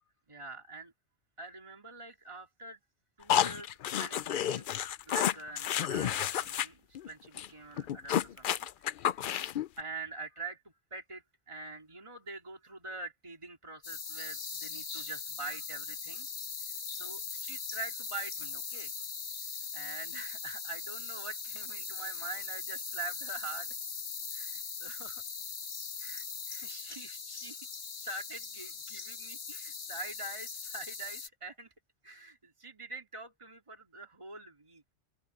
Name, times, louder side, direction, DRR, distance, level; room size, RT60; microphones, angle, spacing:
voice 1, 0.3-0.9 1.4-2.8 3.2-4.7 5.1-9.3 9.8-16.3 17.0-18.9 19.7-23.7 24.3-25.2 26.0-27.6 28.0-31.7 32.0-34.9, right 3 dB, 25° right, 2.8 m, -45 dB
sound 1, 3.3-6.7 6.9-7.1 7.4-7.5 7.8-9.7, left 10 dB, 60° left, 0.6 m, -30 dB
sound 2, 13.8-31.3, left 5 dB, 80° left, 1.8 m, -40 dB
open air
omnidirectional pair, 1.2 m